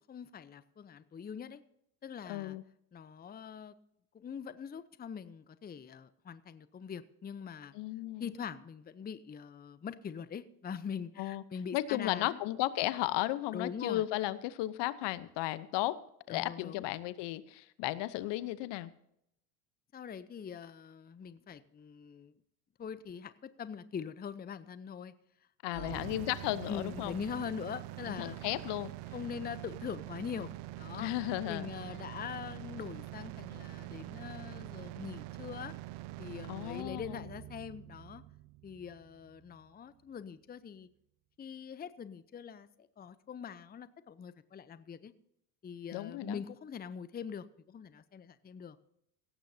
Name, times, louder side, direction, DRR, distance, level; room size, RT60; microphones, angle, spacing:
voice 1, 0.1-1.6 2.0-2.6 2.9-3.7 4.1-7.7 8.2-12.4 13.5-14.0 16.3-16.9 19.9-22.3 22.8-25.1 25.7-26.1 26.7-28.4 29.1-31.1 31.5-35.7 36.2-38.2 38.6-40.9 41.4-45.1 45.6-48.8, left 7 dB, 20° left, 15 dB, 0.7 m, -43 dB
voice 2, 2.3-2.6 7.7-8.3 11.2-11.4 11.7-16.0 16.3-18.9 25.6-27.1 28.0-28.9 30.9-31.7 36.5-37.3 45.9-46.4, left 16 dB, 60° left, 16 dB, 0.9 m, -35 dB
sound 1, 25.7-39.7, right 16 dB, 60° right, 0.8 m, -45 dB
17.0 x 14.0 x 2.8 m, 0.76 s
hypercardioid pair, 80°, 49 cm